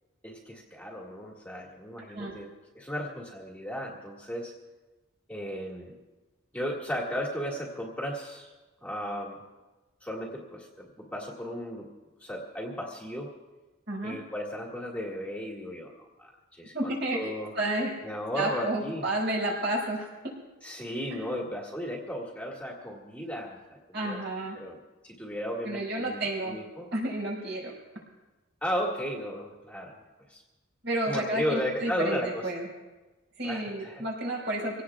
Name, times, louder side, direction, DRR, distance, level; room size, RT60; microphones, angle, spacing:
voice 1, 0.2-4.5 5.3-5.9 6.5-8.5 8.8-9.4 10.0-11.9 12.2-13.3 14.0-17.5 18.0-19.1 20.6-24.2 24.5-24.8 25.0-26.9 28.6-30.0 30.3-30.4 31.0-32.6 33.4-34.0, equal, 5° left, -3 dB, 2.0 m, -35 dB
voice 2, 13.9-14.2 16.7-18.1 18.3-20.3 21.1-21.4 23.9-24.6 25.6-26.6 26.9-27.7 30.8-32.7 33.4-34.8, right 1 dB, 55° right, -3 dB, 5.2 m, -31 dB
25.0 x 18.0 x 2.4 m, 1.2 s
head